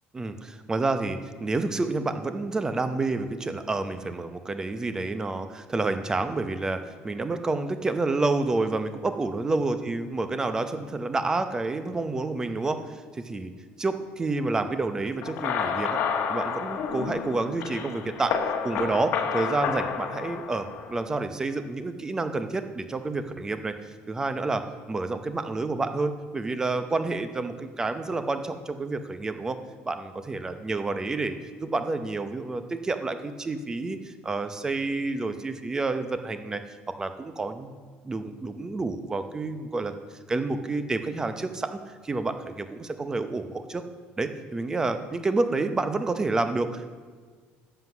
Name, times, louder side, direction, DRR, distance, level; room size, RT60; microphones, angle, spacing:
voice 1, 0.1-13.5 13.8-16.0 16.3-18.4 18.6-29.6 29.8-37.7 38.0-39.9 40.3-41.8 42.0-43.8 44.2-46.9, right 3 dB, 15° right, 9 dB, 0.7 m, -29 dB
sound 1, 15.2-21.0, left 7 dB, 55° left, 1.1 m, -30 dB
11.0 x 7.9 x 6.1 m, 1.6 s
cardioid pair, 145°, 4 cm